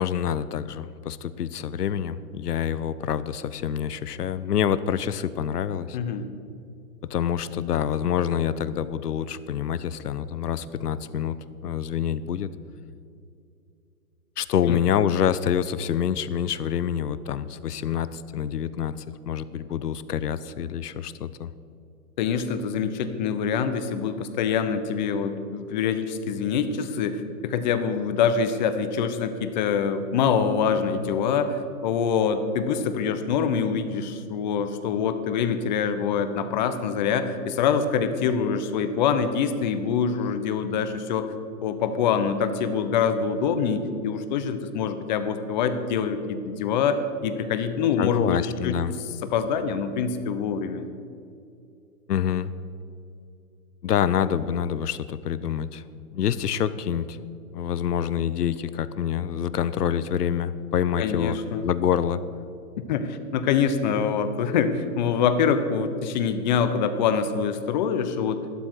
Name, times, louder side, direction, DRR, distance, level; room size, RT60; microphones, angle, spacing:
voice 1, 0.0-6.0 7.0-12.5 14.4-21.5 48.0-48.9 52.1-52.5 53.8-55.8 56.1-57.2 57.5-61.4 61.6-62.2, left 9 dB, 90° left, 15 dB, 0.7 m, -26 dB
voice 2, 5.9-6.2 14.7-14.8 22.2-41.3 41.6-48.7 49.2-50.9 61.0-61.6 62.9-68.4, left 6 dB, 30° left, 10 dB, 0.8 m, -25 dB
12.0 x 12.0 x 4.6 m, 2.5 s
hypercardioid pair, 145°, 46 cm